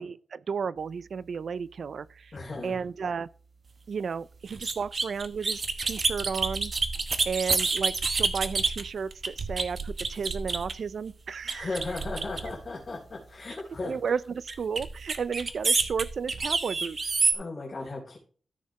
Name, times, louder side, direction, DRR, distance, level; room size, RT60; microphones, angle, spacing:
voice 1, 0.0-2.3 2.6-3.3 3.9-6.7 7.3-11.8 13.8-17.0, right 6 dB, 65° right, 0.4 m, -33 dB
voice 2, 2.3-2.8 11.5-13.9 17.3-18.2, left 3 dB, 35° left, 3.2 m, -36 dB
sound 1, 4.5-10.9 11.5-12.7 14.5-17.3, right 4 dB, 40° right, 0.9 m, -29 dB
13.5 x 6.5 x 3.0 m
wide cardioid pair, 170°, 0 cm